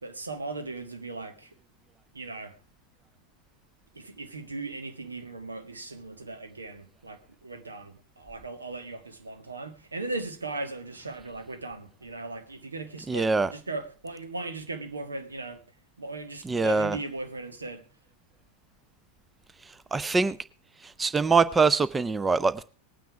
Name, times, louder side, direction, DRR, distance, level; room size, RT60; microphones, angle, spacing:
voice 1, 0.0-1.5 2.1-2.6 3.9-15.6 16.0-17.8, right 2 dB, 75° right, 1.6 m, -38 dB
voice 2, 13.1-13.5 16.4-17.0 19.9-20.4 20.8-22.6, right 4 dB, 15° right, 0.5 m, -23 dB
19.0 x 9.3 x 4.7 m
figure-of-eight pair, 90°, 0 cm